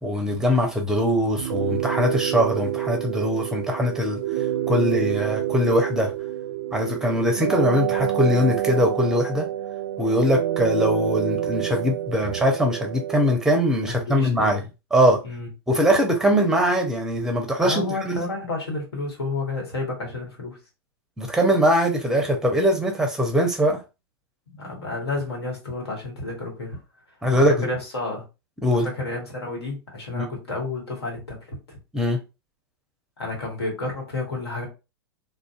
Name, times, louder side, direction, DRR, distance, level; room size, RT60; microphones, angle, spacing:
voice 1, 0.0-4.2 4.7-6.1 6.7-9.5 10.0-14.6 14.9-15.2 15.7-18.2 21.2-23.8 27.2-27.7 28.6-28.9 30.1-30.3 31.9-32.2, equal, 5° right, 0.7 m, -21 dB
sound 1, 1.4-13.4, right 11 dB, 65° right, 0.4 m, -28 dB
voice 2, 13.9-14.6 15.2-15.5 17.6-20.6 24.5-26.8 27.3-28.2 28.8-31.8 33.2-34.7, left 3 dB, 75° left, 1.2 m, -31 dB
2.5 x 2.1 x 2.4 m
hypercardioid pair, 100°, 13 cm